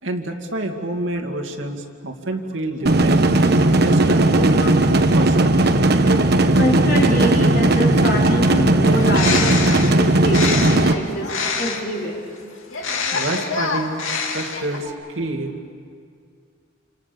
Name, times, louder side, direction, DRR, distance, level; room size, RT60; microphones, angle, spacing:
voice 1, 0.0-3.2 3.8-5.6 13.1-14.0 14.3-15.6, right 1 dB, 70° right, 3 dB, 2.4 m, -28 dB
sound 1, 2.9-10.9, right 2 dB, 55° right, 1.3 m, -16 dB
voice 2, 6.5-9.6 9.9-11.3 11.6-12.2 14.8-14.9, equal, 50° left, -2 dB, 4.5 m, -25 dB
Bird, 8.9-12.0 12.7-14.9, left 5 dB, 90° left, 2.6 m, -26 dB
28.5 x 28.0 x 7.0 m, 2.2 s
head